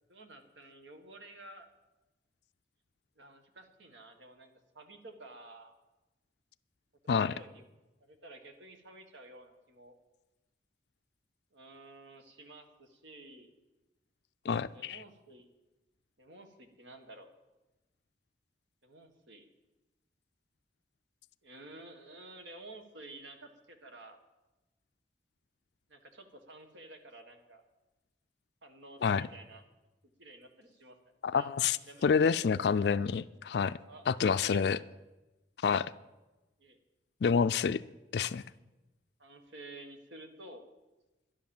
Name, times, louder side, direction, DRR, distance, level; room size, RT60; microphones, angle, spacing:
voice 1, 0.1-1.7 3.2-5.7 7.2-7.7 8.0-9.9 11.5-13.5 14.7-15.5 16.2-17.3 18.8-19.5 21.4-24.2 25.9-27.6 28.6-29.6 30.0-31.0 31.3-31.5 31.9-32.5 33.9-34.8 35.8-35.9 36.6-36.8 39.2-40.6, right 2 dB, 85° right, 6 dB, 1.8 m, -52 dB
voice 2, 14.5-15.0 29.0-29.3 31.2-31.8 32.0-33.8 34.1-34.8 35.6-35.9 37.2-37.8 38.1-38.4, left 6 dB, 65° left, 14 dB, 0.4 m, -28 dB
11.5 x 11.0 x 7.3 m, 1.1 s
head